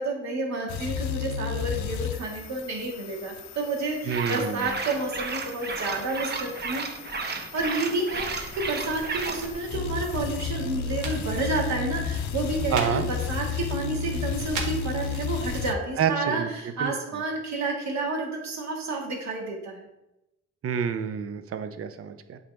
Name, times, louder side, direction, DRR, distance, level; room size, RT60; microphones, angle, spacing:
voice 1, 0.0-6.8 7.5-19.8, right 2 dB, 65° right, -1 dB, 2.0 m, -30 dB
sound 1, 0.7-15.7, left 7 dB, 70° left, 0.6 m, -34 dB
sound 2, 4.1-9.4, right 4 dB, 35° right, 1.0 m, -33 dB
voice 2, 4.1-4.7 12.7-13.0 16.0-16.5 16.8-16.9 20.6-22.4, right 7 dB, 50° right, 9 dB, 0.6 m, -28 dB
sound 3, 8.1-15.6, right 3 dB, 85° right, 1.4 m, -40 dB
8.3 x 3.9 x 3.5 m, 0.89 s
cardioid pair, 90°, 30 cm